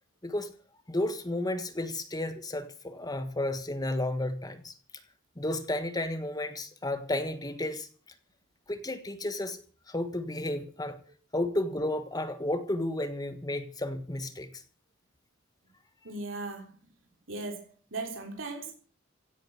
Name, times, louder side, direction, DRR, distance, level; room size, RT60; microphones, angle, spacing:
voice 1, 0.9-4.7 5.4-7.9 8.7-9.6 9.9-11.0 11.3-14.5, left 1 dB, 20° left, 1.5 m, -32 dB
voice 2, 16.0-16.8 17.3-18.7, right 3 dB, 70° right, 3.6 m, -38 dB
16.5 x 9.1 x 8.0 m
head